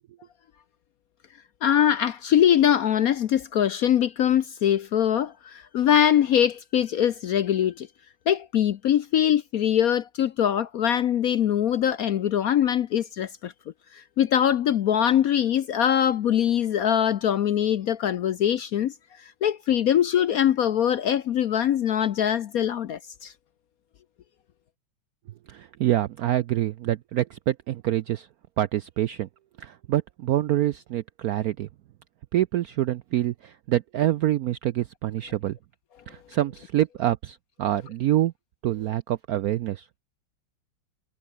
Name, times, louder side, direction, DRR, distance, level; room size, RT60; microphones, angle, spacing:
voice 1, 1.6-7.9 8.3-13.5 13.9-18.9 19.2-23.3, left 10 dB, 65° left, 0.9 m, -22 dB
voice 2, 25.5-28.3 28.6-29.3 29.6-31.7 32.3-35.6 36.1-38.3 38.6-40.0, right 13 dB, 75° right, 0.8 m, -26 dB
omnidirectional pair, 2.1 m